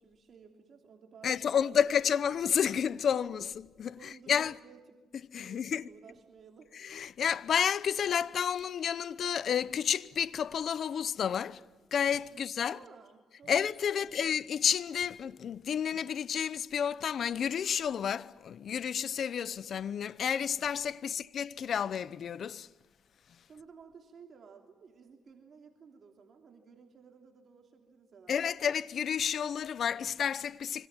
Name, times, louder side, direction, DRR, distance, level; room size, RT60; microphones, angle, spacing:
voice 1, 0.0-2.4 4.0-5.0 5.4-6.7 12.3-13.6 13.9-14.3 21.0-21.3 23.5-28.6, right 5 dB, 50° right, 3.2 m, -55 dB
voice 2, 1.2-4.6 5.3-5.8 6.7-11.6 11.9-12.8 13.5-22.7 28.3-30.9, left 8 dB, 60° left, 0.8 m, -31 dB
26.5 x 25.0 x 7.3 m
cardioid pair, 90°, 0 cm